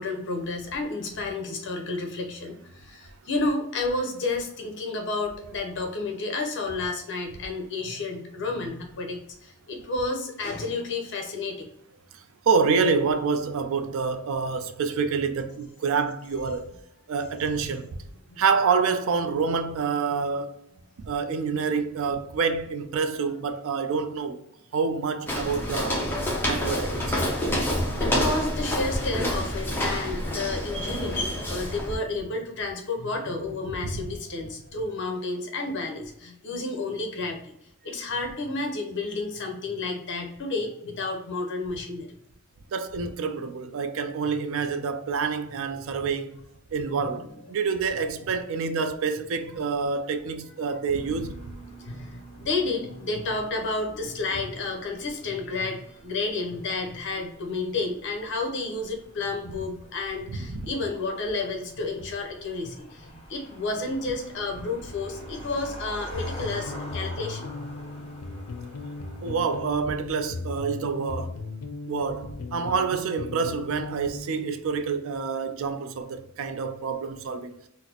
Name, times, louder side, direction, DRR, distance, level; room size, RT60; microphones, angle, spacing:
voice 1, 0.0-11.7 18.3-18.4 28.0-37.5 37.8-42.1 47.0-47.6 47.9-48.0 49.5-49.6 51.8-67.7 68.0-68.1, left 3 dB, 55° left, 0.8 m, -31 dB
voice 2, 12.5-16.7 17.1-17.9 18.4-20.6 21.0-24.4 24.7-26.0 26.5-27.2 33.7-34.0 42.7-46.4 46.7-51.4 60.5-60.7 69.2-71.3 71.9-77.5, right 5 dB, 60° right, 0.4 m, -27 dB
Walk footsteps, 25.3-32.0, equal, 10° left, 0.6 m, -27 dB
sound 1, 50.9-69.6, right 1 dB, 30° left, 1.0 m, -46 dB
sound 2, 66.1-74.6, left 3 dB, 80° left, 0.5 m, -37 dB
4.0 x 2.0 x 2.9 m
head